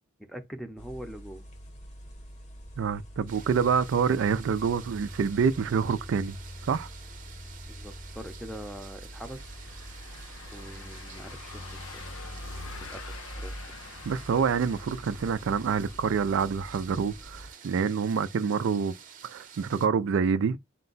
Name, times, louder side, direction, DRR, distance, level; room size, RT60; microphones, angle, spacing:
voice 1, 0.2-1.4 7.7-9.4 10.5-12.1 12.8-13.6, equal, ahead, 0.6 m, -43 dB
sound 1, 0.8-17.5, equal, 35° left, 0.8 m, -45 dB
voice 2, 2.8-6.4 6.7-6.9 14.1-18.9 19.2-20.6, right 6 dB, 65° right, 0.3 m, -27 dB
sound 2, 3.3-19.9, right 8 dB, 40° right, 0.7 m, -50 dB
Car passing by / Engine, 9.3-16.0, left 5 dB, 80° left, 0.7 m, -46 dB
4.5 x 2.2 x 3.9 m
head